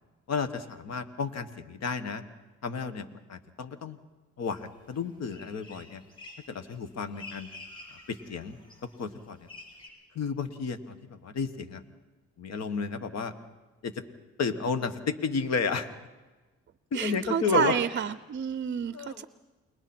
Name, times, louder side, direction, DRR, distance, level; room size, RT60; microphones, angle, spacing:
voice 1, 0.3-2.2 2.6-4.0 4.4-6.0 6.5-7.5 8.1-8.6 9.0-9.5 10.2-11.8 12.4-13.3 13.8-14.0 14.4-16.0 16.9-17.8 18.9-19.3, left 5 dB, 60° left, 10 dB, 1.7 m, -32 dB
sound 1, 4.4-5.0 5.3-9.9, left 3 dB, 15° left, 7.1 m, -49 dB
voice 2, 16.9-19.2, right 7 dB, 40° right, 14 dB, 0.6 m, -29 dB
29.5 x 21.0 x 4.5 m, 1.2 s
cardioid pair, 90°, 30 cm